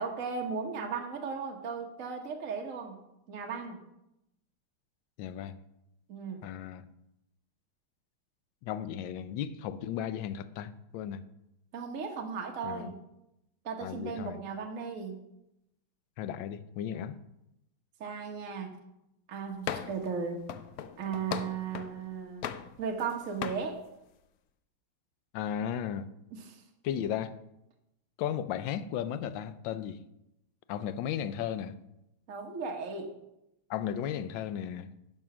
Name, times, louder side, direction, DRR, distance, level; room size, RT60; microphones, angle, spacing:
voice 1, 0.0-3.0 3.3-3.8 6.1-6.5 11.7-13.0 13.6-15.2 16.9-17.0 18.0-18.8 19.3-20.4 21.0-22.5 22.8-23.8 26.3-26.6 32.3-33.1, right 5 dB, 45° right, 1.5 m, -36 dB
voice 2, 5.2-5.6 6.4-6.8 8.6-11.2 12.6-12.9 13.8-14.4 16.2-17.2 25.3-26.1 26.8-27.4 28.2-30.0 30.7-31.8 33.7-34.9, left 9 dB, 70° left, 1.3 m, -35 dB
sound 1, 19.7-20.1 20.5-22.0 22.4-23.1 23.4-23.7, left 9 dB, 90° left, 0.8 m, -38 dB
11.0 x 6.2 x 6.1 m
omnidirectional pair, 2.3 m